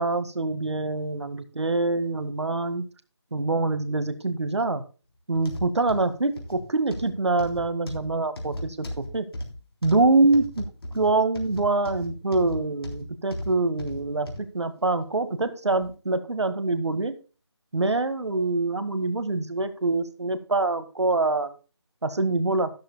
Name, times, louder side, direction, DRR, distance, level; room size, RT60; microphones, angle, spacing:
voice 1, 0.0-2.8 3.3-4.8 5.3-9.2 9.8-10.7 10.9-14.3 14.5-17.1 17.7-21.5 22.0-22.7, right 3 dB, 70° right, 12 dB, 1.8 m, -25 dB
sound 1, 5.4-14.5 15.0-15.2 15.8-15.9, left 1 dB, 55° left, 3.5 m, -37 dB
12.5 x 12.5 x 2.2 m, 0.34 s
figure-of-eight pair, 170°, 15 cm